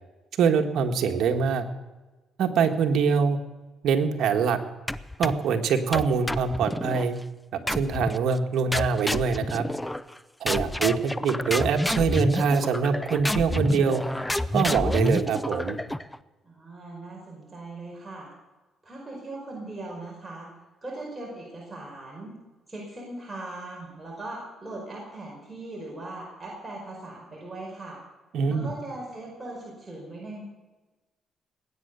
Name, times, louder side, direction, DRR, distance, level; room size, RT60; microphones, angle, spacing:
voice 1, 0.4-1.7 2.4-3.4 3.8-4.6 5.2-7.2 7.5-9.7 10.4-14.0 14.5-15.8 28.3-28.7, right 6 dB, 75° right, 5 dB, 1.6 m, -24 dB
sound 1, 4.9-5.5 5.9-7.1 7.7-8.2 8.7-10.2 10.5-16.2, left 1 dB, 10° left, 0.6 m, -29 dB
voice 2, 16.4-18.3 18.8-20.5 20.8-22.3 22.7-28.0 28.5-30.4, right 2 dB, 15° right, -3 dB, 5.1 m, -39 dB
19.5 x 9.3 x 6.9 m, 1.2 s
cardioid pair, 90°, 0 cm